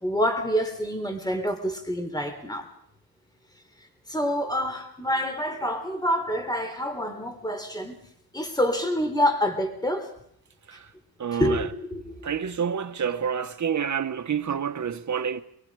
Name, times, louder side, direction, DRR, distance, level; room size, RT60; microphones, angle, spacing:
voice 1, 0.0-2.7 4.1-8.0 8.3-10.1 11.4-12.6, equal, 10° left, 3.8 m, -27 dB
voice 2, 11.2-11.7 12.2-15.4, right 7 dB, 50° right, 1.5 m, -28 dB
25.0 x 24.0 x 5.0 m
cardioid pair, 115°, 38 cm